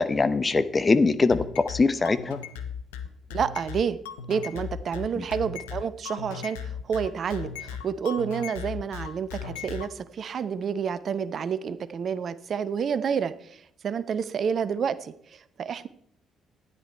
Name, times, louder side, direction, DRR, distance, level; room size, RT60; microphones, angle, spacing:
voice 1, 0.0-2.4 5.1-5.2, left 3 dB, 30° left, 12 dB, 0.9 m, -22 dB
sound 1, 1.3-9.9, left 7 dB, 80° left, 0.8 m, -37 dB
voice 2, 3.3-4.0 4.3-15.9, right 7 dB, 50° right, 15 dB, 0.6 m, -29 dB
12.5 x 10.0 x 4.4 m, 0.69 s
figure-of-eight pair, 45°, 0 cm